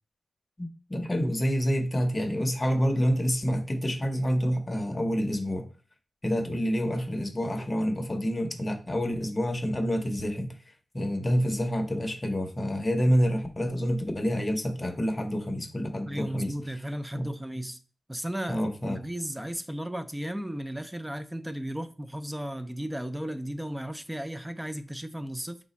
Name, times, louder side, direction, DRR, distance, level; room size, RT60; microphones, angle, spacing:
voice 1, 0.6-5.7 6.2-10.5 10.9-16.5 17.1-17.3 18.5-19.0, equal, 25° left, 0.7 m, -28 dB
voice 2, 16.1-17.8 18.1-25.6, right 1 dB, 5° right, 0.4 m, -35 dB
4.9 x 2.3 x 4.0 m
wide cardioid pair, 130°, 0 cm